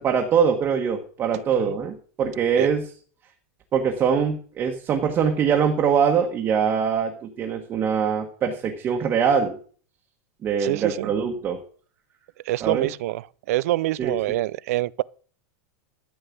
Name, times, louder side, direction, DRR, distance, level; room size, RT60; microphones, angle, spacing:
voice 1, 0.0-2.8 3.7-9.6 10.4-11.6 12.6-12.9 14.0-14.1, right 7 dB, 20° right, 1.5 m, -23 dB
voice 2, 10.6-11.1 12.5-15.0, right 16 dB, 65° right, 0.5 m, -26 dB
13.0 x 5.3 x 8.5 m
supercardioid pair, 165°, 9 cm